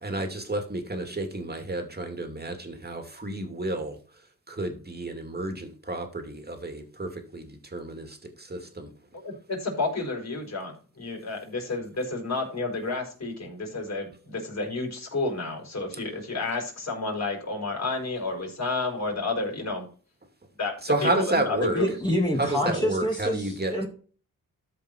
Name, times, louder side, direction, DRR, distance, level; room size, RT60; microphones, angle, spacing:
voice 1, 0.0-4.0 4.5-8.9 20.8-21.8 22.4-23.7, right 2 dB, 25° right, 5 dB, 2.5 m, -30 dB
voice 2, 9.1-19.8 20.6-20.8 21.0-21.9, left 3 dB, 50° left, -1 dB, 4.7 m, -31 dB
voice 3, 21.8-23.9, equal, 15° left, -2 dB, 2.4 m, -27 dB
13.0 x 5.3 x 4.5 m, 0.41 s
cardioid pair, 75°, 35 cm